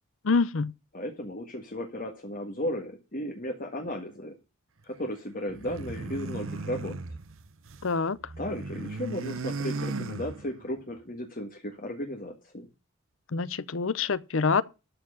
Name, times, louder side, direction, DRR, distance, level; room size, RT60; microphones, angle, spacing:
voice 1, 0.2-0.7 7.8-8.2 13.3-14.6, left 4 dB, 70° left, 0.6 m, -26 dB
voice 2, 0.9-4.3 4.8-7.0 8.4-12.7, equal, 40° left, 1.7 m, -35 dB
sound 1, 5.5-7.9 8.2-10.8, right 3 dB, 75° right, 0.9 m, -36 dB
13.0 x 4.6 x 8.7 m
head